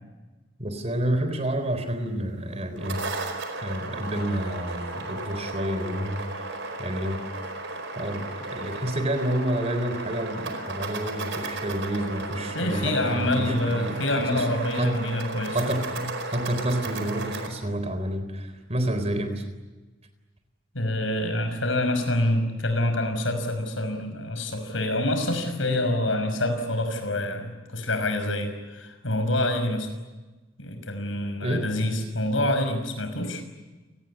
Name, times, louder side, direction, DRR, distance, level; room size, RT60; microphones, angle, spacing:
voice 1, 0.6-3.0 3.6-7.2 8.0-14.5 14.7-15.0 15.5-19.5 31.4-31.7, right 1 dB, 35° right, 9 dB, 3.8 m, -29 dB
sound 1, 2.6-17.5, right 2 dB, 70° right, 4.8 m, -35 dB
voice 2, 12.5-15.6 20.7-29.9 30.6-33.4, left 1 dB, 80° left, 7 dB, 5.8 m, -26 dB
29.5 x 19.5 x 9.9 m, 1.2 s
head